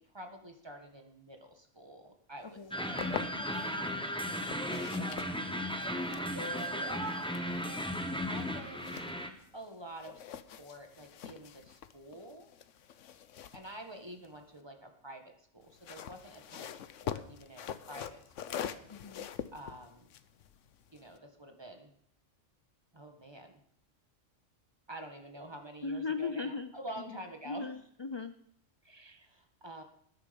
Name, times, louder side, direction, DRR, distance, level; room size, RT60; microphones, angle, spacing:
voice 1, 0.0-3.5 4.5-5.4 6.2-7.1 8.0-9.1 9.5-10.2 10.6-12.5 13.5-18.8 19.5-20.1 20.9-21.9 22.9-23.5 24.9-27.8 29.2-29.8, right 1 dB, 20° right, 4 dB, 1.7 m, -48 dB
sound 1, 2.6-3.7 4.3-9.7 10.0-14.6 15.6-21.2, left 9 dB, 75° left, 1.1 m, -44 dB
sound 2, 2.7-9.3, equal, 5° left, 1.2 m, -35 dB
voice 2, 18.9-19.3 25.8-26.7 27.5-28.3 28.8-29.3, left 4 dB, 35° left, 10 dB, 0.4 m, -38 dB
20.0 x 9.8 x 5.3 m, 0.68 s
omnidirectional pair, 1.3 m